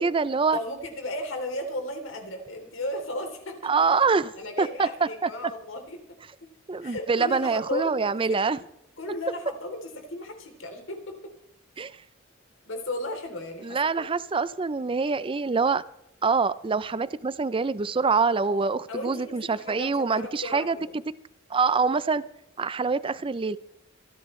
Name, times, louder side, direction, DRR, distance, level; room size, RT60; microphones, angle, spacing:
voice 1, 0.0-0.6 3.6-4.3 4.6-5.3 6.7-8.6 11.8-11.9 13.6-15.8 16.2-20.8 21.5-22.2 22.6-23.6, right 4 dB, 25° right, 16 dB, 0.4 m, -25 dB
voice 2, 0.5-3.7 4.4-6.0 6.4-6.5 6.8-8.7 9.0-11.3 12.6-14.1 18.4-20.9, left 1 dB, 80° left, 4 dB, 3.3 m, -35 dB
26.0 x 10.5 x 3.2 m, 0.78 s
head